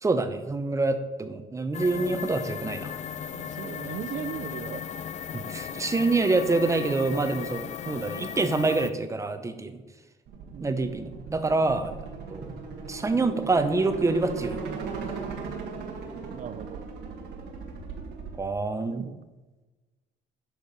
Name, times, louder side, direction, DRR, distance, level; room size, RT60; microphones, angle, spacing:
voice 1, 0.0-2.9 5.3-9.8 10.6-12.0 12.3-12.5 12.9-14.6 18.4-19.0, right 3 dB, 20° right, 9 dB, 0.8 m, -26 dB
sound 1, 1.7-8.9, left 8 dB, 45° left, 0.5 m, -36 dB
voice 2, 3.3-5.0 10.5-11.0 16.3-16.9 18.9-19.2, right 9 dB, 50° right, 14 dB, 0.5 m, -38 dB
sound 2, 10.3-18.4, right 4 dB, 85° right, 1.6 m, -38 dB
12.0 x 4.7 x 5.4 m, 1.2 s
cardioid pair, 110°, 17 cm